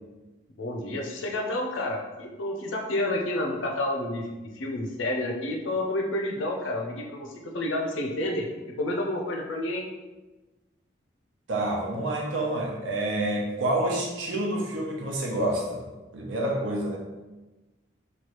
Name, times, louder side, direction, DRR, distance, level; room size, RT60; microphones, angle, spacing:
voice 1, 0.6-8.5 8.8-9.8, left 1 dB, 90° left, 1 dB, 0.6 m, -30 dB
voice 2, 11.5-15.8 16.1-17.0, right 1 dB, 80° right, -1 dB, 0.6 m, -28 dB
3.1 x 2.4 x 2.9 m, 1.1 s
head